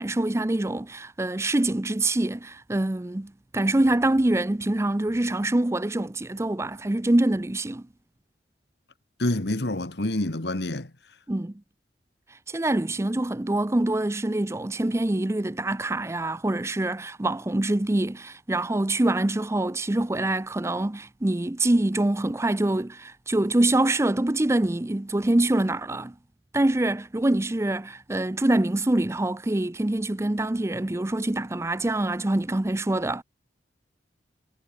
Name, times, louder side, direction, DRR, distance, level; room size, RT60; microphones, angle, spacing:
voice 1, 0.0-7.9 11.3-11.5 12.3-26.1 26.5-33.2, right 1 dB, 15° right, 0.5 m, -25 dB
voice 2, 9.2-10.9, left 1 dB, 70° left, 1.9 m, -27 dB
head